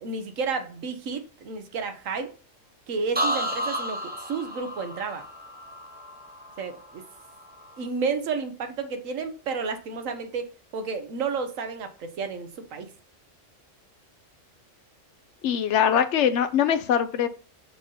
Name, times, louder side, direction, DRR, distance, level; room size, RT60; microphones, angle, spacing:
voice 1, 0.0-2.3 2.9-5.2 6.6-7.1 7.8-12.9, right 5 dB, 90° right, 1.3 m, -31 dB
sound 1, 3.1-7.0 7.3-7.8, equal, 10° right, 0.5 m, -32 dB
voice 2, 15.4-17.3, left 8 dB, 70° left, 0.8 m, -22 dB
6.5 x 2.8 x 5.3 m
omnidirectional pair, 1.3 m